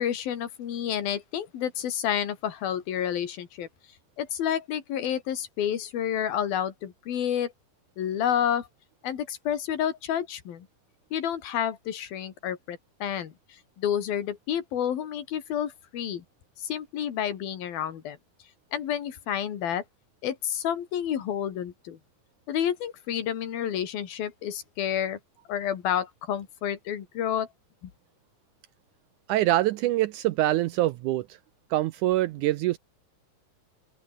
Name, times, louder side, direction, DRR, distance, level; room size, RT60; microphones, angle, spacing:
voice 1, 0.0-3.7 4.2-7.5 8.0-8.7 9.0-10.7 11.1-13.3 13.8-16.2 16.6-18.2 18.7-19.8 20.2-22.0 22.5-25.2 25.5-27.5 27.8-27.9, left 9 dB, 90° left, 4.1 m, -29 dB
voice 2, 29.3-31.3 31.7-32.8, right 15 dB, 80° right, 1.8 m, -24 dB
open air
omnidirectional pair, 4.1 m